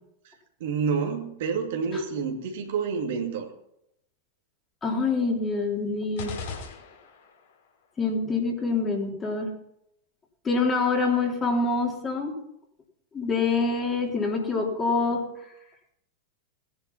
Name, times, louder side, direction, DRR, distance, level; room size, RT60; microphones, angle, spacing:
voice 1, 0.2-3.5, right 5 dB, 55° right, 2 dB, 2.6 m, -29 dB
voice 2, 4.8-6.3 8.0-9.5 10.4-12.4 13.1-15.3, left 4 dB, 20° left, 0 dB, 3.6 m, -26 dB
sound 1, 6.2-7.5, left 5 dB, 55° left, 4.8 m, -37 dB
19.5 x 10.5 x 5.8 m, 0.79 s
figure-of-eight pair, 90°, 0 cm